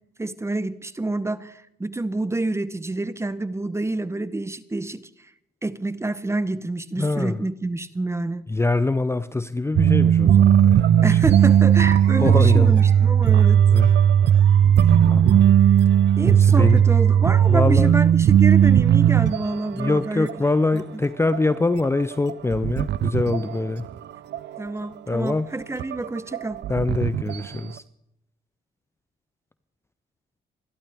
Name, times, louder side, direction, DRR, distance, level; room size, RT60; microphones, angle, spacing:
voice 1, 0.2-5.3 5.6-8.4 11.0-13.6 15.6-15.8 16.2-20.3 20.7-20.8 24.6-26.6, right 2 dB, 15° right, 0.8 m, -28 dB
voice 2, 7.0-7.4 8.5-11.2 12.2-12.8 13.7-13.9 14.8-15.5 15.9-16.0 16.2-16.8 17.5-18.1 19.7-23.9 25.1-25.5 26.7-27.8, left 3 dB, 15° left, 0.5 m, -24 dB
sound 1, 9.7-20.0 20.2-20.5 20.8-20.9 21.3-24.0 24.3-24.8 25.3-25.4 25.8-27.7, right 9 dB, 60° right, 0.6 m, -17 dB
sound 2, 11.4-11.5 11.8-13.2 13.8-15.5 16.0-17.8, right 7 dB, 85° right, 6.8 m, -44 dB
25.0 x 12.0 x 3.5 m
cardioid pair, 90°, 20 cm